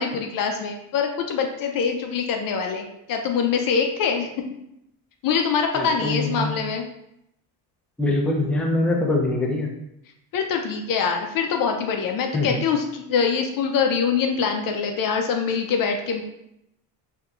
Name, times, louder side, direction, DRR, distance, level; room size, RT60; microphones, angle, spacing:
voice 1, 0.0-4.3 5.2-6.9 10.3-16.2, left 6 dB, 55° left, 3 dB, 0.5 m, -24 dB
voice 2, 5.7-6.5 8.0-9.7 12.3-12.6, left 2 dB, 5° left, -2 dB, 0.5 m, -23 dB
3.4 x 2.8 x 2.4 m, 0.81 s
cardioid pair, 95°, 42 cm